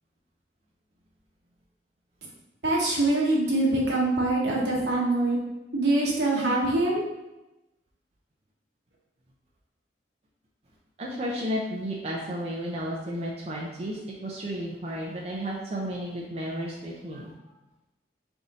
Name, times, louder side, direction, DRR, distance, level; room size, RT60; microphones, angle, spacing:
voice 1, 2.6-5.4 5.7-7.0, right 2 dB, 75° right, -3 dB, 1.1 m, -24 dB
voice 2, 4.5-4.9 11.0-17.3, equal, 35° right, -3 dB, 0.5 m, -33 dB
3.5 x 2.6 x 3.9 m, 1.0 s
head